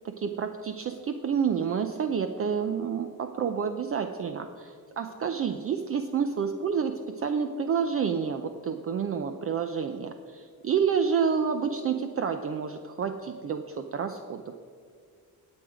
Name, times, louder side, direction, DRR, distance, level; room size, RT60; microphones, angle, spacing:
voice 1, 0.0-14.5, right 6 dB, 40° right, 7 dB, 0.6 m, -29 dB
19.5 x 8.0 x 5.0 m, 2.1 s
cardioid pair, 160°, 37 cm